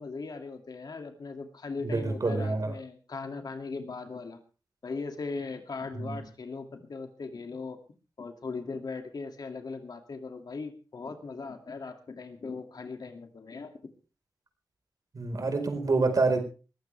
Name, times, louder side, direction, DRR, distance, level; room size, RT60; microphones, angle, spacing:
voice 1, 0.0-4.4 4.8-7.8 8.2-13.7, left 4 dB, 60° left, 6 dB, 2.4 m, -39 dB
voice 2, 1.8-2.7 5.9-6.2 15.1-16.4, right 3 dB, 50° right, 6 dB, 4.5 m, -27 dB
20.5 x 15.5 x 3.4 m, 0.35 s
wide cardioid pair, 115°, 8 cm